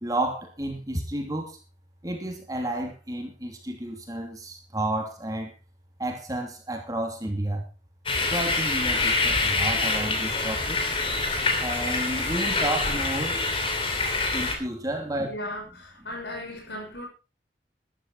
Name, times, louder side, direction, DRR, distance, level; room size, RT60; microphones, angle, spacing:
voice 1, 0.0-1.6 2.0-5.5 6.0-7.6 8.3-10.8 11.6-13.4 14.3-15.3, right 1 dB, 20° right, 2.9 m, -31 dB
sound 1, 8.1-14.6, left 3 dB, 30° left, 2.9 m, -26 dB
voice 2, 15.3-17.1, left 1 dB, 70° left, 6.4 m, -36 dB
13.5 x 12.5 x 4.2 m
head